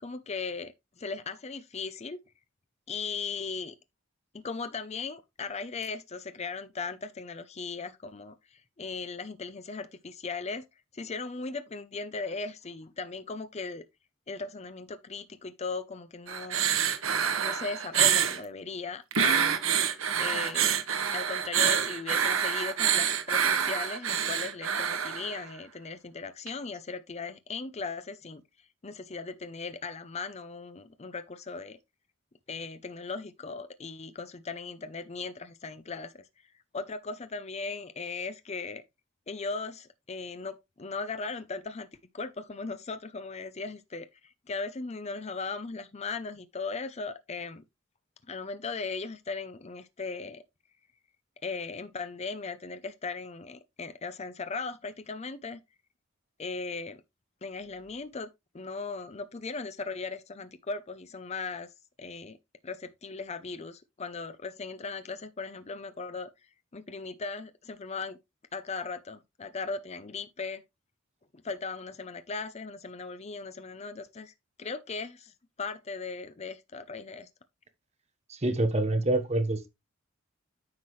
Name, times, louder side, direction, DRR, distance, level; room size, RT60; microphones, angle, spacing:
voice 1, 0.0-2.2 2.9-3.8 4.3-10.6 10.9-13.8 14.3-16.7 17.4-19.6 20.2-20.8 21.1-28.4 28.8-31.8 32.5-36.2 36.7-38.8 39.3-41.9 42.1-47.6 48.3-50.4 51.4-55.6 56.4-57.0 57.4-58.3 58.5-61.7 62.0-62.4 62.6-66.3 66.7-68.2 68.5-70.6 71.3-74.3 74.6-75.3 75.6-77.3, left 4 dB, 35° left, 0.6 m, -38 dB
sound 1, 16.3-18.4 19.1-25.4 26.5-26.6, right 8 dB, 90° right, 1.3 m, -27 dB
voice 2, 78.3-79.7, right 2 dB, 35° right, 1.2 m, -26 dB
9.6 x 5.9 x 3.2 m
head